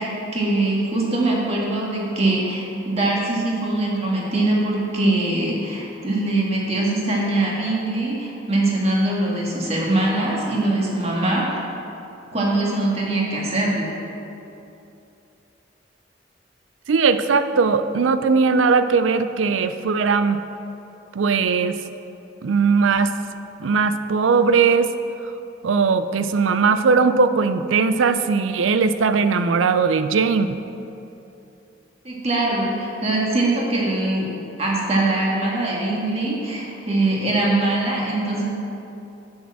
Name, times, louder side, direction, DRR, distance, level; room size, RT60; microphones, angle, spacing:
voice 1, 0.0-11.6 12.3-13.9 32.0-34.3 34.6-38.5, right 2 dB, 35° right, -4 dB, 1.7 m, -22 dB
voice 2, 16.9-20.4 21.1-21.8 22.4-23.1 23.6-24.9 25.6-30.6, right 5 dB, 90° right, 11 dB, 0.4 m, -19 dB
6.9 x 6.3 x 7.4 m, 2.8 s
head